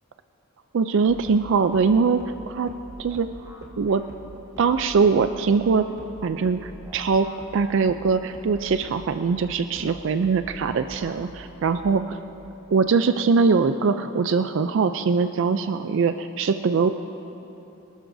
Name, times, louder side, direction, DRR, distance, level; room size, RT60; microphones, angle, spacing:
voice 1, 0.7-2.7 3.0-3.3 3.8-4.0 4.6-5.8 6.2-7.3 7.5-12.2 12.7-16.9, right 5 dB, 65° right, 9 dB, 0.4 m, -22 dB
sound 1, 1.1-12.1, equal, 15° right, 1.4 m, -45 dB
24.5 x 12.5 x 2.7 m, 3.0 s
head